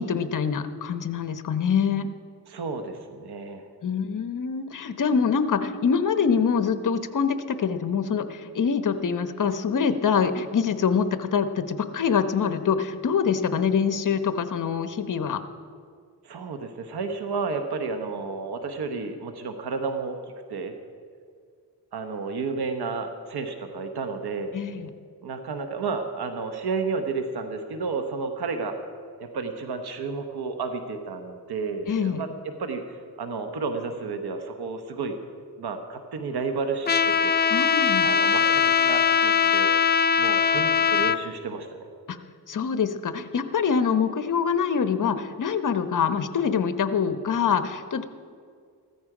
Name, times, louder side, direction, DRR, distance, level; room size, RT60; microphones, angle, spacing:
voice 1, 0.0-2.1 3.8-15.4 24.5-24.9 31.9-32.2 37.5-38.1 42.1-42.2 42.5-48.1, left 6 dB, 50° left, 10 dB, 0.9 m, -25 dB
voice 2, 2.5-3.7 16.2-20.2 20.5-20.7 21.9-24.5 25.2-28.8 29.2-35.2 35.6-37.3 38.0-39.7 40.2-41.8, right 4 dB, 80° right, 6 dB, 1.2 m, -31 dB
Trumpet, 36.9-41.2, left 7 dB, 30° left, 0.3 m, -21 dB
14.5 x 14.0 x 5.0 m, 2.1 s
wide cardioid pair, 105°, 39 cm